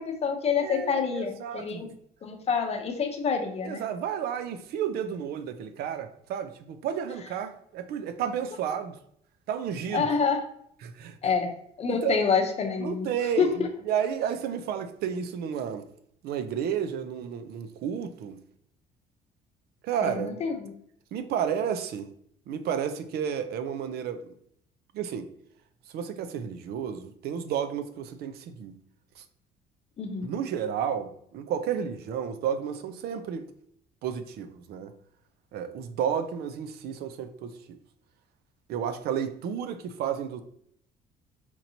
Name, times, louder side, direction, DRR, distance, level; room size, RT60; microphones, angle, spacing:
voice 1, 0.0-1.9 2.2-3.8 9.9-10.4 11.2-13.1 13.4-13.7 20.0-20.7 30.0-30.3, left 5 dB, 40° left, 0.7 m, -27 dB
voice 2, 0.6-2.0 3.6-9.0 9.5-10.1 10.8-11.2 11.9-12.2 12.8-15.8 16.2-18.4 19.8-20.3 21.1-22.1 22.5-24.2 24.9-25.3 25.9-28.8 29.2-29.3 30.2-33.5 34.0-34.9 35.5-37.8 38.7-40.4, right 8 dB, 70° right, 0.5 m, -32 dB
4.5 x 2.8 x 2.6 m
cardioid pair, 110°, 17 cm